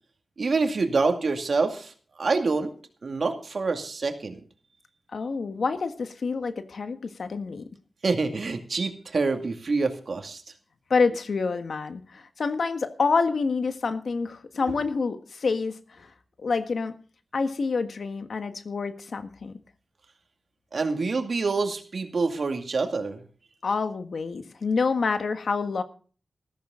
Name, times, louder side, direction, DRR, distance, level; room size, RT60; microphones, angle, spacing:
voice 1, 0.4-1.9 2.2-2.7 3.0-4.4 8.0-10.4 20.7-23.2, right 4 dB, 65° right, 6 dB, 2.3 m, -26 dB
voice 2, 5.1-7.7 10.9-16.1 16.4-16.9 17.3-19.6 23.6-25.8, left 4 dB, 70° left, 9 dB, 1.5 m, -27 dB
14.5 x 14.0 x 3.8 m, 0.40 s
cardioid pair, 55°, 0 cm